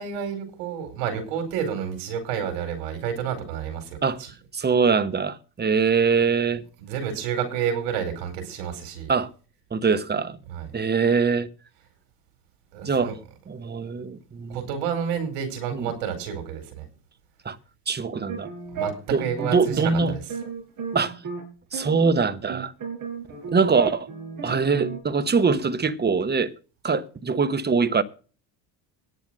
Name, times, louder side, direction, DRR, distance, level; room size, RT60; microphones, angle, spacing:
voice 1, 0.0-4.3 6.8-9.1 10.5-10.7 12.7-13.1 14.5-16.8 18.7-18.9 19.2-20.2, right 8 dB, 80° right, 4.9 m, -30 dB
voice 2, 4.5-6.6 9.1-9.3 9.7-10.4 10.7-11.5 12.8-13.1 13.5-14.7 15.7-15.9 17.4-17.6 17.9-18.5 19.1-20.1 20.9-21.2 21.7-22.7 23.5-24.1 24.4-26.5 26.8-28.0, right 5 dB, 20° right, 1.1 m, -23 dB
sound 1, 18.1-21.4 21.7-25.0, right 6 dB, 40° right, 5.9 m, -34 dB
10.5 x 8.2 x 6.4 m
supercardioid pair, 85°, 48 cm